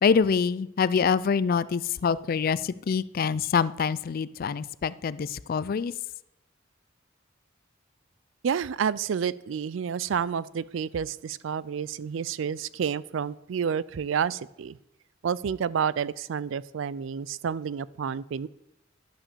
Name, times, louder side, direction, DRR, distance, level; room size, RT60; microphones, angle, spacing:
voice 1, 0.0-5.9, left 6 dB, 45° left, 18 dB, 0.3 m, -25 dB
voice 2, 8.4-14.8 15.2-18.5, right 7 dB, 75° right, 20 dB, 0.4 m, -29 dB
11.5 x 5.9 x 6.8 m, 0.85 s
head